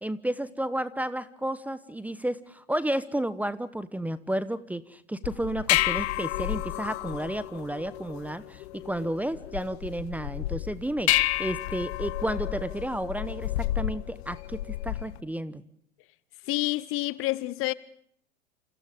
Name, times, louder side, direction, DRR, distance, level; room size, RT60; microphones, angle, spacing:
voice 1, 0.0-13.5 13.7-14.6 14.8-15.6, right 1 dB, 5° right, 1.0 m, -32 dB
sound 1, 5.2-15.2, left 16 dB, 55° left, 1.0 m, -31 dB
voice 2, 16.5-17.7, left 18 dB, 35° left, 1.0 m, -28 dB
28.5 x 28.5 x 3.7 m
hypercardioid pair, 95°, 37 cm